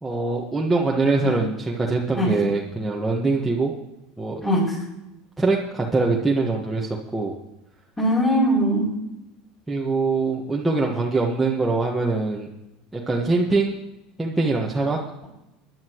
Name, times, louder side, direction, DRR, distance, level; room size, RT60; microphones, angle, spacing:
voice 1, 0.0-3.7 4.2-4.4 5.4-7.3 9.7-12.5 12.9-13.7 14.2-15.0, right 3 dB, 10° right, -3 dB, 1.5 m, -23 dB
voice 2, 8.0-8.9, equal, 20° left, -8 dB, 5.7 m, -20 dB
20.0 x 11.0 x 3.1 m, 0.92 s
supercardioid pair, 100°, 0 cm